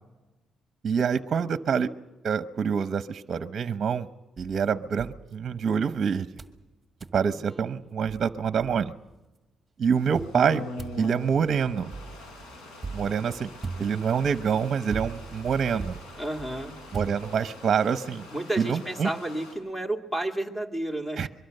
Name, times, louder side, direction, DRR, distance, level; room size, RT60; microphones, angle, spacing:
voice 1, 0.8-1.9 2.2-4.1 4.4-6.3 7.1-8.9 9.8-10.6 11.0-11.9 12.9-13.5 13.8-16.0 16.9-18.3 18.6-19.1 21.2-21.3, right 6 dB, 50° right, 11 dB, 0.8 m, -26 dB
sound 1, 4.4-5.9 6.4-6.6 7.0-7.2 7.8-7.9 8.1-9.2 10.1-17.7, right 4 dB, 20° right, 1.8 m, -41 dB
voice 2, 7.3-8.0 13.1-13.2 16.2-16.8 18.3-21.3, right 1 dB, 10° left, 4 dB, 2.7 m, -32 dB
Stream, 9.9-19.5, left 2 dB, 80° left, 7.5 m, -44 dB
24.0 x 23.0 x 6.7 m, 1.1 s
cardioid pair, 90°, 0 cm